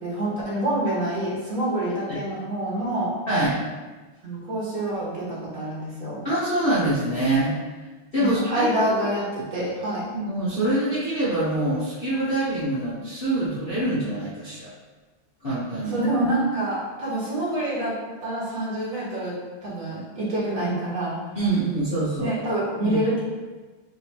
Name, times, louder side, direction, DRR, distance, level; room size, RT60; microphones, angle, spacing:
voice 1, 0.0-3.2 4.2-6.2 8.2-10.1 15.9-17.9 18.2-19.3 19.6-21.2 22.2-23.2, right 1 dB, 45° right, -8 dB, 1.5 m, -26 dB
voice 2, 3.3-3.6 6.2-7.5 8.1-8.7 10.1-14.7 15.4-16.0 21.3-22.4 22.8-23.0, right 1 dB, 60° left, -12 dB, 0.5 m, -25 dB
5.4 x 2.8 x 2.9 m, 1.3 s
omnidirectional pair, 2.4 m